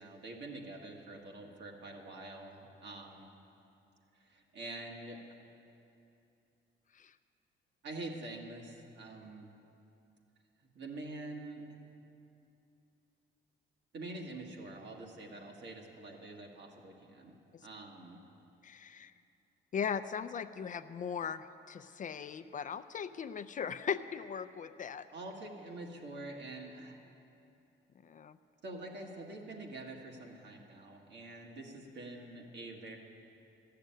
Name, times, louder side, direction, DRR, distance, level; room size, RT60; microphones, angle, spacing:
voice 1, 0.0-3.3 4.1-5.2 7.8-9.5 10.7-11.7 13.9-17.3 17.6-18.2 25.1-27.0 28.6-33.0, right 2 dB, 65° right, 0 dB, 1.8 m, -46 dB
voice 2, 18.6-19.1 19.7-25.1 28.0-28.4, left 7 dB, 40° left, 11 dB, 0.4 m, -38 dB
13.5 x 6.7 x 9.1 m, 2.7 s
cardioid pair, 90°, 20 cm